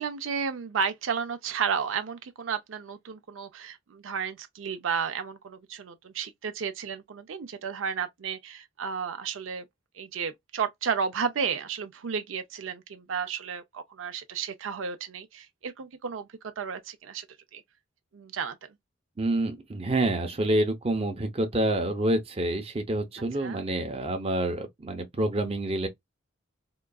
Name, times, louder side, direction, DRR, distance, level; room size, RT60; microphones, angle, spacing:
voice 1, 0.0-9.6 10.0-16.3 16.6-17.3 17.5-17.6 18.1-18.6 23.4-23.6, right 6 dB, 80° right, 0.5 m, -32 dB
voice 2, 19.2-25.9, right 1 dB, 30° right, 0.6 m, -27 dB
3.7 x 2.3 x 2.2 m
head